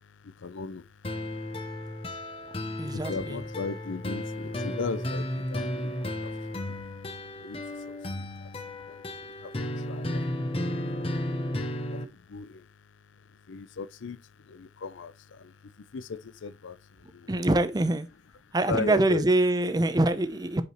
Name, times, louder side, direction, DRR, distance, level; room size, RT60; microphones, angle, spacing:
voice 1, 0.2-1.2 2.1-2.5 2.9-10.2 10.6-11.1 11.7-12.7 13.3-17.4 18.7-19.2, left 4 dB, 90° left, 0.5 m, -39 dB
sound 1, 1.0-12.0, left 1 dB, 30° left, 0.9 m, -33 dB
voice 2, 2.8-3.4 17.3-18.1 18.5-20.6, right 2 dB, 20° right, 0.6 m, -24 dB
8.2 x 4.8 x 3.0 m
head